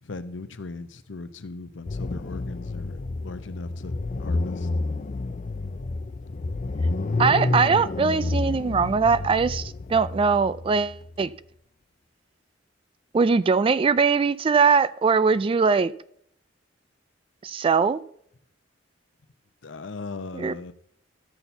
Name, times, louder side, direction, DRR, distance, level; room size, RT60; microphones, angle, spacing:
voice 1, 0.0-3.9 4.2-4.7 19.6-20.7, left 3 dB, 75° left, 0.7 m, -38 dB
sound 1, 1.9-11.2, left 2 dB, 40° left, 0.5 m, -29 dB
voice 2, 7.2-11.3 13.1-15.9 17.4-18.0 20.4-20.7, right 5 dB, 30° right, 0.3 m, -21 dB
12.5 x 4.3 x 6.9 m
head